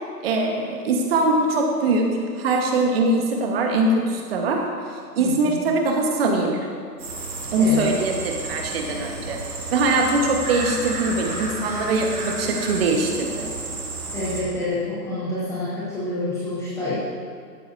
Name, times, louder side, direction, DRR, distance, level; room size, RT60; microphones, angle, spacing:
voice 1, 0.2-4.7 5.2-6.6 7.5-9.4 9.7-13.5, right 2 dB, 35° right, 1 dB, 1.4 m, -22 dB
voice 2, 5.2-5.6 7.6-7.9 14.1-16.9, left 2 dB, 5° left, -9 dB, 0.7 m, -28 dB
sound 1, 7.0-14.4, right 2 dB, 60° right, 2.6 m, -32 dB
13.0 x 11.0 x 2.8 m, 2.1 s
hypercardioid pair, 135°, 49 cm